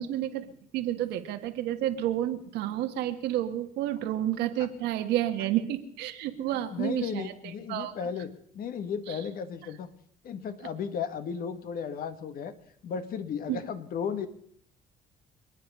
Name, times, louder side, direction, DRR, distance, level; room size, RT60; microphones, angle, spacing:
voice 1, 0.0-8.1 9.1-9.2 13.5-13.6, right 12 dB, 85° right, 7 dB, 1.5 m, -30 dB
voice 2, 6.7-9.9 10.2-12.5 12.8-14.3, left 7 dB, 60° left, 10 dB, 1.6 m, -34 dB
27.5 x 9.5 x 5.5 m, 0.64 s
cardioid pair, 110°, 17 cm